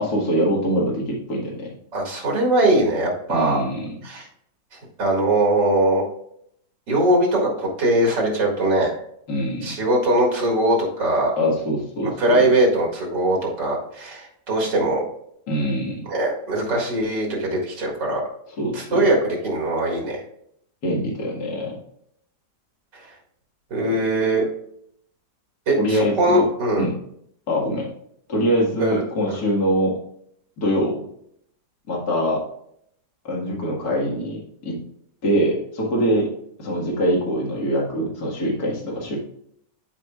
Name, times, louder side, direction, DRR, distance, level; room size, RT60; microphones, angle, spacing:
voice 1, 0.0-1.7 3.3-3.9 9.3-9.7 11.4-12.5 15.5-16.0 18.6-19.1 20.8-21.8 23.8-24.0 25.8-26.4 26.8-26.9 27.5-27.9 28.3-29.9 30.6-31.0 31.9-32.4 33.2-34.8 35.2-36.3 36.6-39.2, equal, 60° left, -2 dB, 2.3 m, -23 dB
voice 2, 1.9-3.6 4.0-4.3 5.0-6.0 6.9-8.9 9.6-11.3 12.0-15.0 16.1-18.2 18.7-20.2 23.7-24.4 25.7-26.9 28.8-29.0, right 1 dB, 80° right, -1 dB, 2.6 m, -21 dB
13.0 x 4.7 x 2.4 m, 0.70 s
omnidirectional pair, 1.9 m